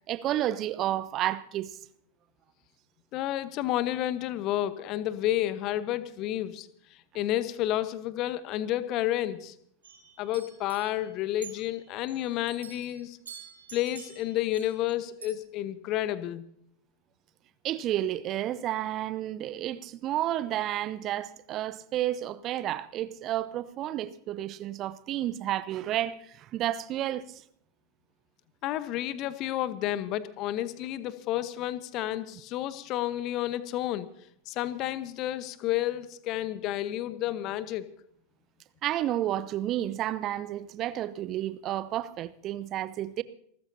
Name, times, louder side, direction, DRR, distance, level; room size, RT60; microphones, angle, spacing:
voice 1, 0.0-1.8 17.6-27.4 38.8-43.2, right 13 dB, 35° right, 0.8 m, -31 dB
voice 2, 3.1-6.7 7.1-9.5 10.2-13.2 13.7-16.5 28.6-34.1 34.5-37.9, left 13 dB, 40° left, 1.1 m, -30 dB
sound 1, 9.8-12.2 12.5-14.9 15.2-15.4, right 7 dB, 70° right, 3.6 m, -48 dB
27.5 x 14.5 x 2.8 m
figure-of-eight pair, 90°, 0 cm